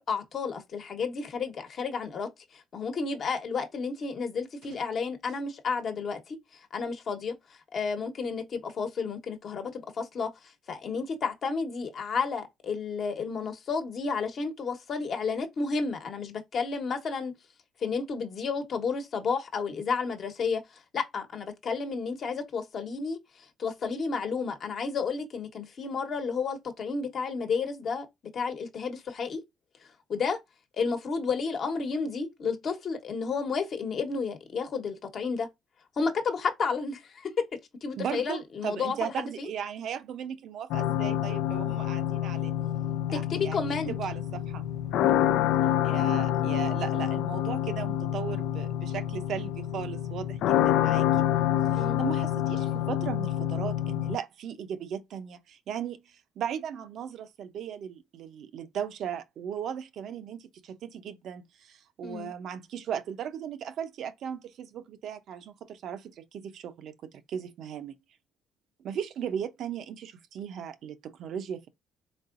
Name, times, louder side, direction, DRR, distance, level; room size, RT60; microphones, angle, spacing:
voice 1, 0.1-7.3 7.7-10.3 10.7-17.3 17.8-28.1 28.3-29.4 30.1-30.4 30.7-35.5 36.0-37.5 37.8-39.5 43.1-43.9 51.7-52.0 62.0-62.3, left 5 dB, 50° left, 1.1 m, -31 dB
voice 2, 38.0-42.5 43.1-44.6 45.6-51.1 52.0-56.0 56.4-68.0 68.8-71.7, right 8 dB, 65° right, 0.6 m, -37 dB
Creepy church bell, 40.7-54.2, left 11 dB, 80° left, 0.3 m, -27 dB
4.1 x 3.7 x 2.5 m
cardioid pair, 100°, 0 cm